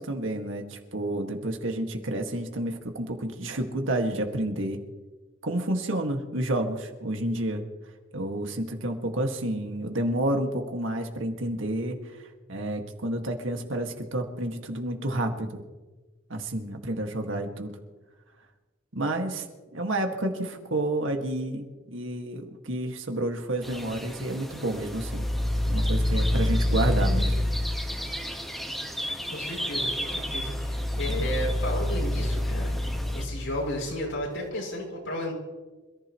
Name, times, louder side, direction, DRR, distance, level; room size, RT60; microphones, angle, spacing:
voice 1, 0.0-4.8 5.4-7.6 8.1-12.0 12.5-15.6 16.3-17.7 18.9-19.5 19.7-25.3 25.7-27.5, right 1 dB, 75° right, 4 dB, 2.0 m, -30 dB
sound 1, 23.6-33.3, equal, ahead, 1.5 m, -36 dB
sound 2, 24.8-28.5 29.8-34.2, left 1 dB, 55° left, 1.6 m, -28 dB
voice 2, 29.2-35.3, left 1 dB, 85° left, -3 dB, 6.9 m, -33 dB
27.0 x 15.0 x 3.2 m, 1.3 s
head